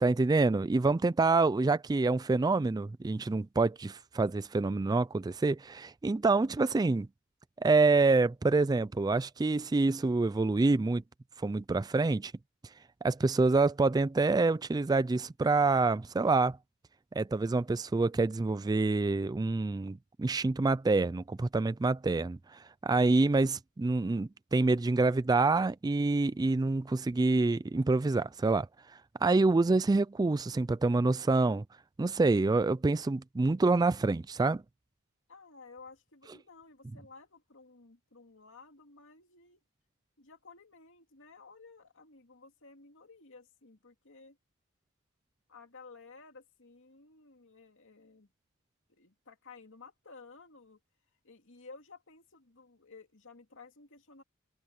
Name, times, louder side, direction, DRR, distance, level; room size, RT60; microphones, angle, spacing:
voice 1, 0.0-7.1 7.6-11.0 11.4-12.3 13.0-16.6 17.2-28.7 29.2-31.6 32.0-34.6, right 3 dB, 15° right, 0.3 m, -27 dB
voice 2, 35.3-39.6 40.2-44.4 45.5-48.3 48.9-50.8 51.2-54.2, left 4 dB, 60° left, 2.6 m, -54 dB
head